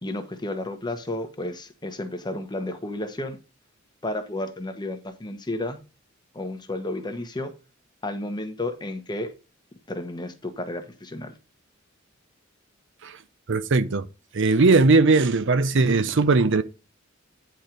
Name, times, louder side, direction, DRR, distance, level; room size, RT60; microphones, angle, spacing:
voice 1, 0.0-3.4 4.0-5.8 6.3-7.5 8.0-9.3 9.9-11.3, left 1 dB, 20° left, 1.2 m, -32 dB
voice 2, 13.5-14.1 14.3-16.6, right 3 dB, 60° right, 0.7 m, -19 dB
10.0 x 4.6 x 5.2 m
head